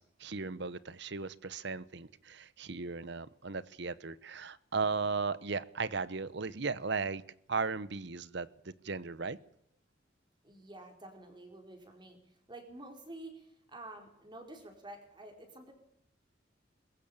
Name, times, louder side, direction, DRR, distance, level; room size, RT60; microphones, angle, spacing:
voice 1, 0.0-7.2 7.5-9.4, right 4 dB, 65° right, 1.0 m, -36 dB
voice 2, 10.4-15.7, right 1 dB, 25° right, 4.7 m, -49 dB
21.5 x 15.5 x 8.9 m
head